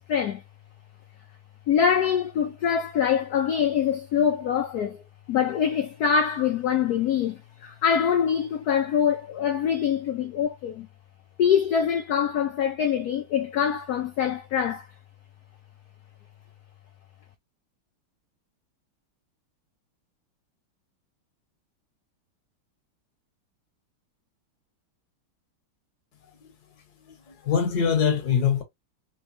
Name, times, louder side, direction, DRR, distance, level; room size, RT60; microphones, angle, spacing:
voice 1, 0.1-0.4 1.7-5.0 5.3-10.9 11.4-14.9, left 8 dB, 80° left, 0.8 m, -24 dB
voice 2, 27.3-28.6, left 7 dB, 55° left, 1.4 m, -23 dB
4.0 x 3.1 x 2.6 m
omnidirectional pair, 2.4 m